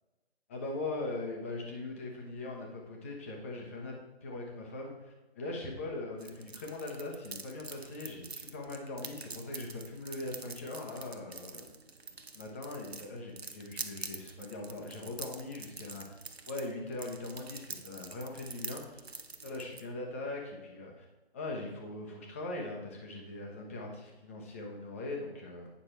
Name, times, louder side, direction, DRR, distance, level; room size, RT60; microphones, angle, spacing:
voice 1, 0.5-4.0 4.2-11.7 12.3-16.1 16.5-19.0 19.4-21.0 21.3-25.7, left 2 dB, 15° left, 0 dB, 0.8 m, -40 dB
sound 1, 6.2-19.8, right 4 dB, 70° right, 0.9 m, -46 dB
9.1 x 6.1 x 4.4 m, 1.1 s
figure-of-eight pair, 145°, 32 cm